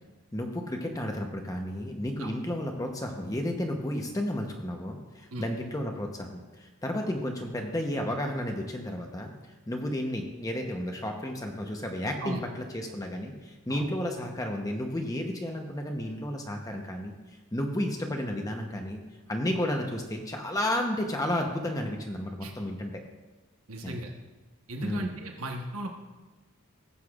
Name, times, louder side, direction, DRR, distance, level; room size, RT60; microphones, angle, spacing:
voice 1, 0.3-9.3 9.7-17.1 17.5-19.0 19.3-23.0 23.8-24.0 24.8-25.1, left 1 dB, 15° left, 2 dB, 0.8 m, -32 dB
voice 2, 23.7-24.1 24.7-25.9, right 1 dB, 75° right, 2 dB, 1.1 m, -36 dB
16.5 x 8.1 x 2.4 m, 1.2 s
head